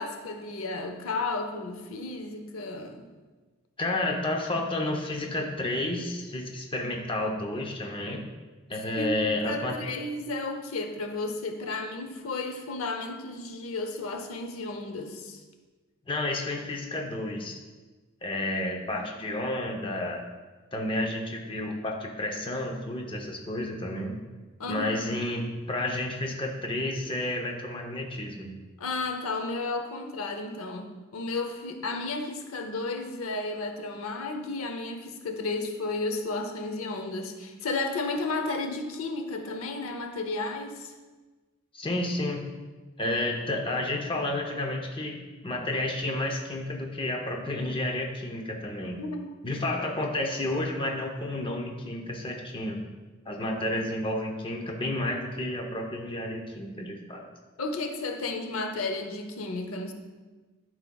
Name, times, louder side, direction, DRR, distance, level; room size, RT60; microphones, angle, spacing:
voice 1, 0.0-3.0 9.0-15.4 24.6-25.2 28.8-40.9 49.0-49.3 49.6-49.7 57.6-59.9, left 3 dB, 85° left, 5 dB, 0.7 m, -33 dB
voice 2, 3.8-8.2 8.7-9.7 16.1-17.6 18.2-20.2 20.7-24.2 24.7-28.5 41.7-42.4 43.0-49.0 49.4-52.8 53.3-57.2, left 1 dB, 25° left, 1 dB, 0.7 m, -31 dB
11.5 x 4.8 x 2.3 m, 1.3 s
head